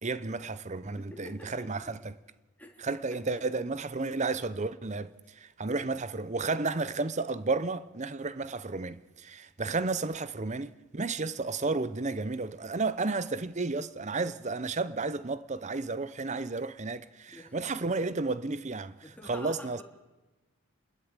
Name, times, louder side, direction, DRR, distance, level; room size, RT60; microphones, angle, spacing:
voice 1, 0.0-2.1 2.8-18.9 19.3-19.8, right 3 dB, 30° right, 0.7 m, -32 dB
voice 2, 1.0-1.9 2.6-3.0 5.7-5.8 17.3-17.6 19.0-19.8, left 1 dB, 5° left, 3.2 m, -48 dB
28.0 x 13.0 x 9.0 m
head